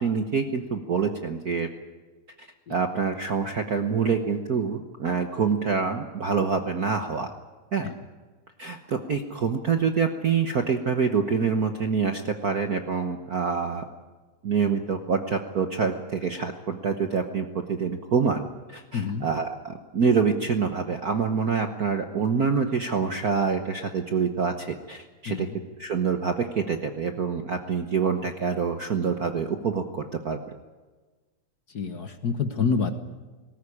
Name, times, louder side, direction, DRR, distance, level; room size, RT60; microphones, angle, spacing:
voice 1, 0.0-1.7 2.4-7.3 7.7-7.8 8.6-13.8 14.4-18.4 18.7-25.5 25.8-30.4, right 5 dB, 65° right, 6 dB, 0.9 m, -26 dB
voice 2, 18.9-19.3 25.2-25.6 31.7-32.9, left 5 dB, 55° left, 8 dB, 1.1 m, -27 dB
19.5 x 18.0 x 9.9 m, 1.3 s
omnidirectional pair, 3.3 m